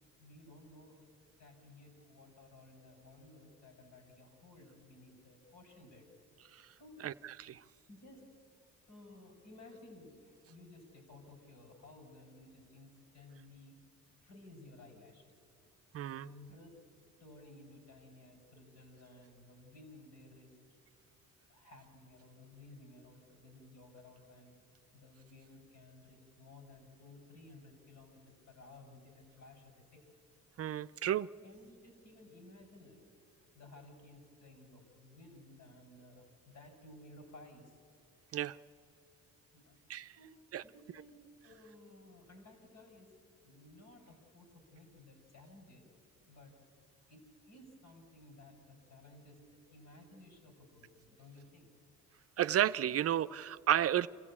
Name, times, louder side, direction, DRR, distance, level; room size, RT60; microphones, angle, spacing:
voice 1, 0.2-1.0 1.4-6.1 6.8-7.1 7.9-8.3 8.6-13.8 14.2-15.4 16.2-16.7 17.2-20.6 21.5-24.6 24.9-30.1 30.9-31.1 31.4-37.8 39.5-39.8 40.1-41.1 41.4-43.2 43.4-45.9 46.3-46.6 47.1-51.7, left 2 dB, 65° left, 5 dB, 5.5 m, -57 dB
voice 2, 15.9-16.3 30.6-31.3 38.3-38.6 39.9-40.1 40.5-40.6 52.4-54.1, right 11 dB, 50° right, 13 dB, 0.5 m, -32 dB
26.5 x 15.0 x 8.5 m, 2.5 s
cardioid pair, 85°, 31 cm